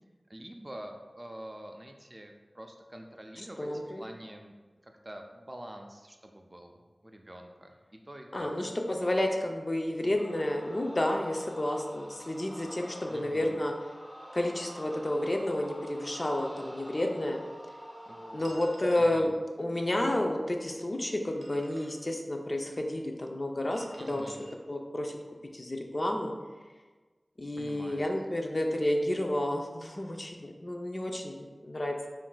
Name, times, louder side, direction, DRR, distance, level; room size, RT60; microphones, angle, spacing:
voice 1, 0.3-4.5 4.8-8.5 13.1-13.5 18.1-18.5 19.0-19.3 24.0-24.4 27.6-28.1, right 1 dB, 30° right, 3 dB, 0.4 m, -46 dB
voice 2, 3.6-4.1 8.3-13.7 14.3-17.4 18.3-19.3 19.6-24.2 24.7-25.2 25.5-26.3 27.4-32.1, left 1 dB, 45° left, 2 dB, 0.4 m, -31 dB
sound 1, 10.1-19.0, equal, 5° right, 0.9 m, -47 dB
sound 2, 18.4-19.3 21.2-22.0 23.7-24.5, right 1 dB, 60° right, 0.6 m, -53 dB
5.7 x 2.5 x 2.2 m, 1.3 s
wide cardioid pair, 55°, 0 cm